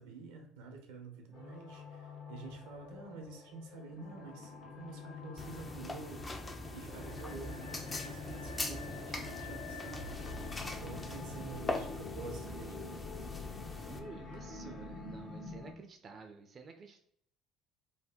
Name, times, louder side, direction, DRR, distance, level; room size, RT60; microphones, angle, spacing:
voice 1, 0.0-6.5 6.7-10.1 10.7-12.8, right 4 dB, 85° right, 4 dB, 0.6 m, -48 dB
sound 1, 1.3-15.7, left 3 dB, 55° left, 1.0 m, -46 dB
sound 2, 5.4-14.0, left 2 dB, 20° left, 0.5 m, -42 dB
voice 2, 13.9-17.0, right 4 dB, 40° right, 5 dB, 0.4 m, -51 dB
2.7 x 2.1 x 3.4 m, 0.68 s
supercardioid pair, 80°, 0 cm